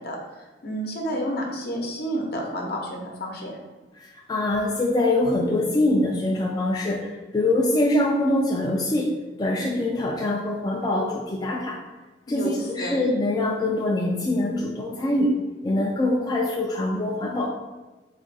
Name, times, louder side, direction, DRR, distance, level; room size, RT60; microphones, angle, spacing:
voice 1, 0.0-3.6 12.3-12.9, equal, 60° left, 0 dB, 0.7 m, -30 dB
voice 2, 4.0-9.1 9.4-11.8 12.3-15.3 15.6-17.5, left 1 dB, 20° left, -1 dB, 0.3 m, -24 dB
3.3 x 2.4 x 3.9 m, 1.2 s
head